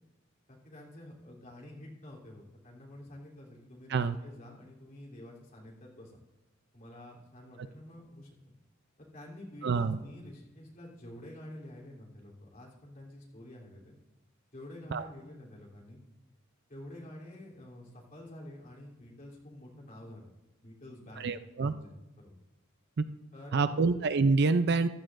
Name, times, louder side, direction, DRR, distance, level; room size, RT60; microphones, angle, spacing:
voice 1, 0.5-6.2 6.7-8.3 9.0-13.9 14.5-16.0 16.7-20.3 20.6-21.3 21.6-22.3 23.3-23.9, left 1 dB, 40° left, -3 dB, 3.3 m, -49 dB
voice 2, 9.6-10.0 14.9-15.0 21.2-21.7 23.0-23.1 23.5-24.9, right 4 dB, 55° right, 11 dB, 0.5 m, -26 dB
15.0 x 13.0 x 2.6 m, 1.0 s
head